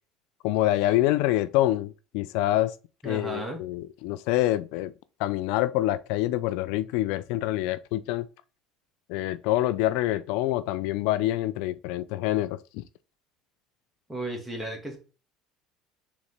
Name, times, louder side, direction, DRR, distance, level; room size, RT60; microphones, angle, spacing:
voice 1, 0.4-2.7 3.0-4.9 5.2-8.3 9.1-12.8, left 15 dB, 75° left, 0.3 m, -26 dB
voice 2, 3.0-3.6 14.1-15.0, right 1 dB, 5° right, 1.8 m, -34 dB
4.0 x 3.6 x 3.3 m
supercardioid pair, 100°, 0 cm